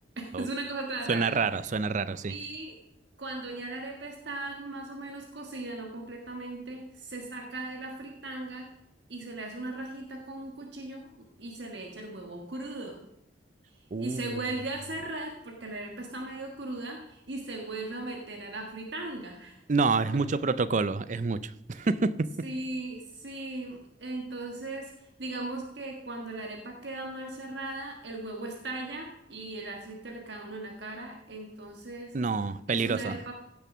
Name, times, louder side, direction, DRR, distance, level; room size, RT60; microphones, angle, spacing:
voice 1, 0.2-1.3 2.3-2.8 3.2-8.7 9.1-13.0 14.0-19.6 20.1-20.2 21.7-21.9 22.4-32.2 32.7-33.3, right 2 dB, 75° right, 2 dB, 1.5 m, -38 dB
voice 2, 1.1-2.3 13.9-14.2 19.7-22.5 32.1-33.2, right 4 dB, 45° right, 16 dB, 0.5 m, -28 dB
16.5 x 6.8 x 6.1 m, 0.83 s
head